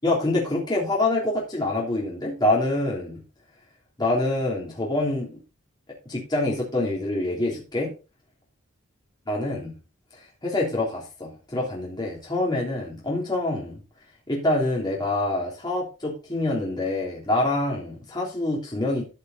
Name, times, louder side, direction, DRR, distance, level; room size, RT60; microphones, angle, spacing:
voice 1, 0.0-3.2 4.0-5.4 6.0-7.9 9.3-9.7 10.4-13.8 14.3-19.0, left 2 dB, 20° left, -3 dB, 3.3 m, -26 dB
13.5 x 5.6 x 3.9 m, 0.31 s
head